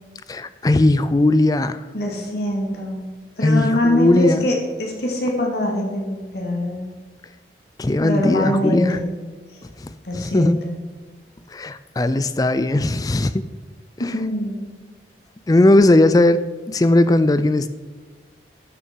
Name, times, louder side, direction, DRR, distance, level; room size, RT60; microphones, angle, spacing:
voice 1, 0.3-1.8 3.4-4.5 7.8-9.0 9.8-9.9 10.2-10.6 11.5-13.5 15.5-17.7, left 2 dB, 20° left, 13 dB, 0.4 m, -17 dB
voice 2, 1.9-3.1 3.4-6.9 8.0-9.1 9.5-9.6 10.0-10.8 14.0-14.6, left 1 dB, 65° left, -1 dB, 2.6 m, -23 dB
12.0 x 6.2 x 4.7 m, 1.4 s
head